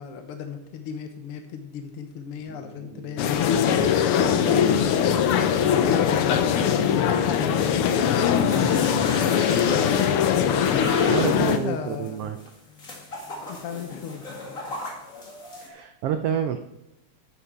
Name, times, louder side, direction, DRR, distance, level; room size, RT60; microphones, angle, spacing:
voice 1, 0.0-3.5 5.6-7.6 8.5-9.8 11.2-12.3 13.5-14.2, left 7 dB, 65° left, 5 dB, 1.6 m, -36 dB
sound 1, 2.4-12.4, right 3 dB, 5° right, 4.7 m, -46 dB
sound 2, 3.2-11.6, left 8 dB, 85° left, 1.2 m, -21 dB
sound 3, 8.3-15.7, left 1 dB, 30° left, 2.4 m, -37 dB
voice 2, 8.5-9.1 11.1-12.4 15.6-16.6, right 9 dB, 85° right, 7 dB, 1.3 m, -28 dB
12.5 x 8.5 x 4.5 m, 0.90 s
omnidirectional pair, 3.4 m